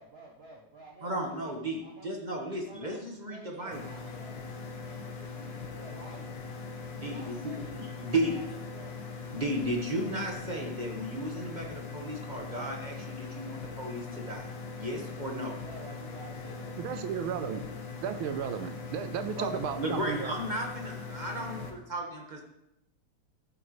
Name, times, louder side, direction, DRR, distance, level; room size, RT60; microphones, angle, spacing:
voice 1, 0.0-2.1 2.6-6.3 6.9-8.5 8.7-9.0 15.6-16.8, right 2 dB, 45° right, 0 dB, 0.8 m, -51 dB
voice 2, 1.0-3.8 6.9-8.4 9.3-14.5 14.8-15.6 19.4-22.4, right 1 dB, 25° right, 0 dB, 1.3 m, -34 dB
sound 1, 3.7-21.7, left 4 dB, 60° left, 1.8 m, -41 dB
voice 3, 16.8-17.6 18.0-20.3, right 8 dB, 75° right, 10 dB, 1.5 m, -34 dB
13.5 x 9.6 x 3.2 m, 0.85 s
omnidirectional pair, 2.4 m